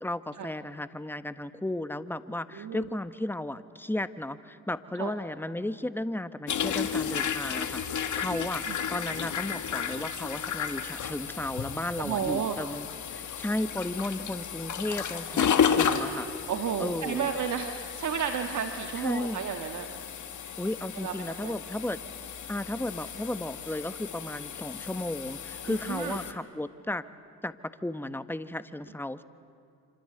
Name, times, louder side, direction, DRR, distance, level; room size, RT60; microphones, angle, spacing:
voice 1, 0.0-8.6 8.9-12.9 13.1-15.5 15.8-16.3 16.8-17.3 19.0-19.4 20.6-22.0 22.5-27.0 27.4-27.5 27.8-29.2, left 1 dB, 5° left, 12 dB, 1.2 m, -34 dB
voice 2, 2.5-2.9 5.0-5.1 8.7-8.8 12.0-12.6 16.5-19.9 21.0-21.6 25.7-26.2, right 7 dB, 60° right, 5 dB, 1.6 m, -32 dB
sound 1, 6.5-26.3, left 7 dB, 60° left, 1.8 m, -33 dB
26.5 x 26.0 x 7.9 m, 2.4 s
supercardioid pair, 50°, 34 cm